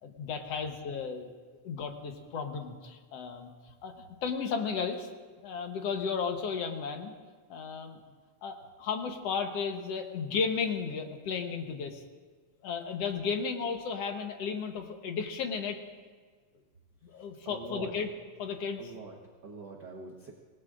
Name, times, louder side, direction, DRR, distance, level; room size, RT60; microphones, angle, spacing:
voice 1, 0.0-1.3 1.6-3.5 3.8-3.9 4.2-5.1 5.4-7.1 7.5-8.0 8.4-12.0 12.6-15.8 17.0-18.1 18.4-18.8, left 5 dB, 65° left, 4 dB, 2.0 m, -34 dB
voice 2, 17.1-18.1 18.8-20.3, right 3 dB, 50° right, -1 dB, 1.4 m, -45 dB
25.5 x 19.5 x 2.5 m, 1.5 s
omnidirectional pair, 3.4 m